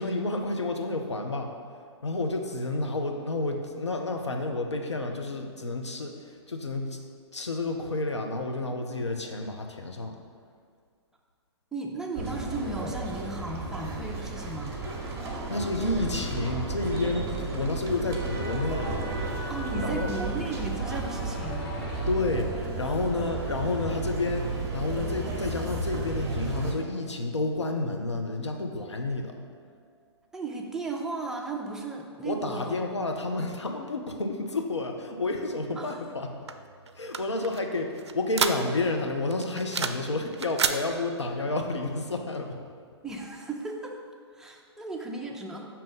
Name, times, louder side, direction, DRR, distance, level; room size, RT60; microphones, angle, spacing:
voice 1, 0.0-1.5 2.0-7.0 7.3-10.2 15.5-19.0 19.8-20.1 22.1-29.4 32.2-36.3 36.9-42.6, left 2 dB, 80° left, 3 dB, 0.7 m, -30 dB
voice 2, 11.7-14.9 19.5-21.7 30.3-32.8 35.8-36.0 43.0-44.0 44.3-45.7, right 3 dB, 5° right, 0 dB, 0.4 m, -35 dB
sound 1, 12.1-26.7, right 3 dB, 20° right, 0.9 m, -33 dB
sound 2, 17.8-29.7 30.0-30.1, left 2 dB, 50° left, 1.4 m, -46 dB
sound 3, 36.5-39.0 39.3-40.1 40.3-40.8, right 5 dB, 70° right, 0.4 m, -30 dB
6.1 x 2.9 x 5.3 m, 2.1 s
figure-of-eight pair, 115°, 15 cm